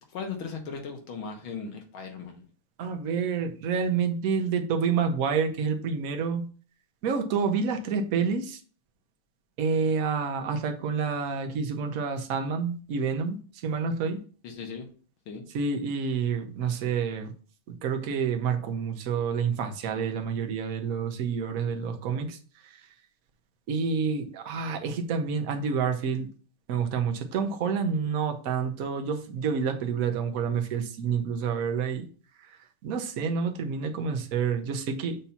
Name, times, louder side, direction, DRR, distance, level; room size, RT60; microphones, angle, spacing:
voice 1, 0.1-2.4 14.4-14.9 15.3-15.4, left 5 dB, 65° left, 3 dB, 2.0 m, -37 dB
voice 2, 2.8-6.5 7.0-8.6 9.6-13.4 13.6-14.2 15.5-17.3 17.7-22.4 22.6-22.8 23.7-26.3 26.7-32.1 32.5-32.6 32.8-35.2, right 6 dB, 60° right, 5 dB, 0.9 m, -28 dB
7.1 x 2.8 x 5.6 m, 0.40 s
omnidirectional pair, 2.4 m